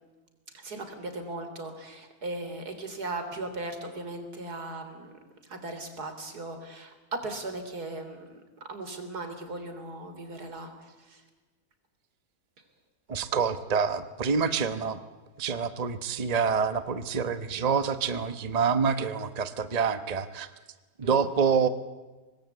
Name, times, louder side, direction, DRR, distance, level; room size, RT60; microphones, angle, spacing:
voice 1, 0.5-5.1 5.4-8.4 8.7-11.2 21.0-21.3, right 2 dB, 85° right, 7 dB, 3.9 m, -38 dB
voice 2, 13.1-15.0 15.4-20.5 21.0-21.7, right 6 dB, 30° right, 11 dB, 1.0 m, -27 dB
25.5 x 19.5 x 8.2 m, 1.2 s
omnidirectional pair, 1.6 m